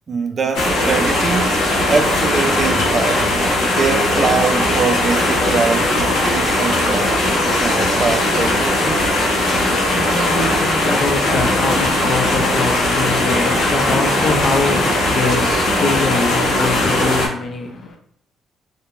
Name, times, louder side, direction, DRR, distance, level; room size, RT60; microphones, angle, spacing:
voice 1, 0.1-7.2 7.6-9.0 13.3-14.0, right 4 dB, 45° right, 0.3 m, -23 dB
sound 1, 0.5-17.3, left 1 dB, 85° left, 0.8 m, -18 dB
voice 2, 9.5-18.0, left 3 dB, 50° left, 0.6 m, -23 dB
2.4 x 2.1 x 3.0 m
cardioid pair, 90°, 0 cm